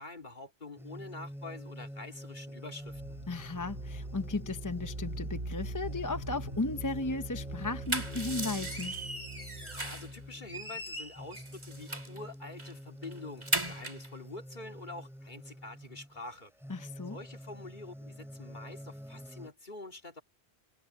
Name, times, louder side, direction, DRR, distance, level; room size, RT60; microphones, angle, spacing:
voice 1, 0.0-3.2 9.8-16.5 17.1-20.2, left 2 dB, 45° left, 2.7 m, -46 dB
sound 1, 0.8-19.5, equal, ahead, 4.7 m, -47 dB
sound 2, 2.8-11.5, right 1 dB, 55° right, 2.6 m, -42 dB
voice 2, 3.3-8.9 16.7-17.2, left 2 dB, 20° left, 0.7 m, -35 dB
sound 3, 7.6-10.1 10.5-12.2 12.6-12.7 13.0-14.1, right 1 dB, 25° right, 2.7 m, -37 dB
omnidirectional pair, 1.1 m